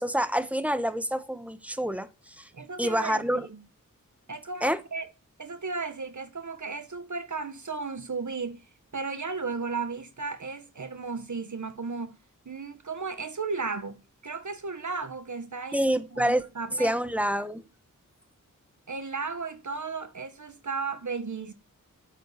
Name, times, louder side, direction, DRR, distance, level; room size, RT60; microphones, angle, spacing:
voice 1, 0.0-2.5 2.8-3.5 4.6-4.8 15.7-16.4 16.8-17.6, equal, 5° right, 1.0 m, -27 dB
voice 2, 2.5-3.6 4.3-5.1 5.4-8.7 8.9-12.2 12.4-15.8 16.1-17.0 18.9-21.5, right 4 dB, 60° right, 1.2 m, -35 dB
8.4 x 7.7 x 8.5 m
wide cardioid pair, 70°, 33 cm